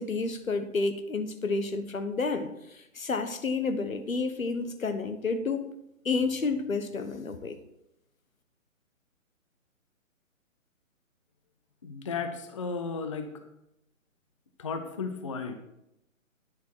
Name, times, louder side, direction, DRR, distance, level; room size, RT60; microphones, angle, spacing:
voice 1, 0.0-5.7 6.0-7.6, left 4 dB, 75° left, 9 dB, 1.2 m, -30 dB
voice 2, 11.8-13.3 14.6-15.6, left 5 dB, 25° left, 7 dB, 0.5 m, -34 dB
9.8 x 7.8 x 4.5 m, 0.85 s
figure-of-eight pair, 135°, 41 cm